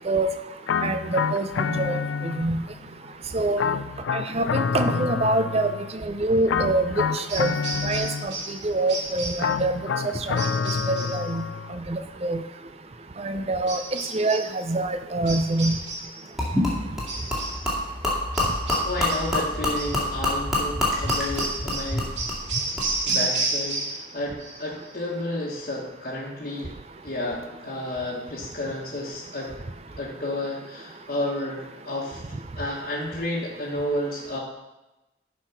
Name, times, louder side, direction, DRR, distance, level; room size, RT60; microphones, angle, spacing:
sound 1, 0.7-2.7 3.6-6.0 6.5-8.6 9.4-11.8, left 6 dB, 75° left, 0.4 m, -28 dB
voice 1, 0.8-2.6 3.3-3.7 4.1-5.7 6.0-7.6 7.8-8.3 8.6-9.7 10.3-10.4 10.9-11.4 11.7-12.4 13.2-13.8 14.1-15.8, right 2 dB, 30° right, 9 dB, 0.5 m, -25 dB
sound 2, 7.3-8.6 8.9-9.5 10.4-11.2 13.7-14.5 15.3-16.2 17.1-17.7 18.3-19.4 19.8-20.0 21.1-24.1 24.4-24.9, right 3 dB, 70° right, 2.4 m, -31 dB
Gurgling / Liquid, 16.4-23.2, left 1 dB, ahead, 2.2 m, -27 dB
voice 2, 18.8-22.1 23.0-26.7 27.0-29.5 30.0-34.4, left 1 dB, 45° left, -6 dB, 1.4 m, -31 dB
11.0 x 4.7 x 5.8 m, 1.0 s
head